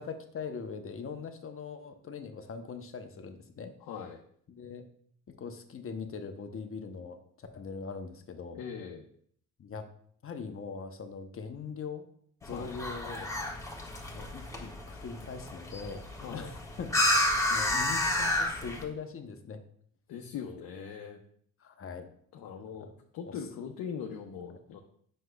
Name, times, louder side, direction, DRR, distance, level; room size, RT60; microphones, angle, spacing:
voice 1, 0.0-3.7 4.5-4.8 5.3-8.6 9.6-9.9 10.2-12.0 12.4-13.3 14.1-17.2 17.5-19.6 21.6-22.1 22.8-22.9 23.3-23.4, left 5 dB, 40° left, 6 dB, 0.9 m, -41 dB
voice 2, 3.8-4.2 8.5-9.1 12.5-12.7 16.2-16.5 20.1-21.2 22.3-22.9 23.1-24.8, left 7 dB, 80° left, 1 dB, 0.8 m, -40 dB
sound 1, 12.4-18.8, left 1 dB, 10° left, 1.6 m, -31 dB
7.7 x 6.3 x 2.3 m, 0.62 s
cardioid pair, 80°, 34 cm